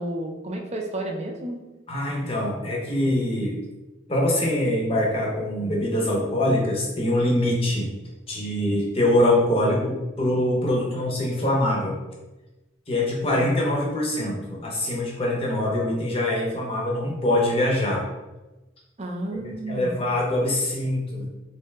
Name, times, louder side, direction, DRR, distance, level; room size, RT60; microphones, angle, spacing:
voice 1, 0.0-1.6 19.0-20.0, right 1 dB, 30° right, 2 dB, 0.4 m, -31 dB
voice 2, 1.9-3.6 4.1-7.9 8.3-12.0 12.9-18.0 19.3-21.3, left 1 dB, 30° left, -3 dB, 0.7 m, -24 dB
3.2 x 2.8 x 3.4 m, 1.1 s
head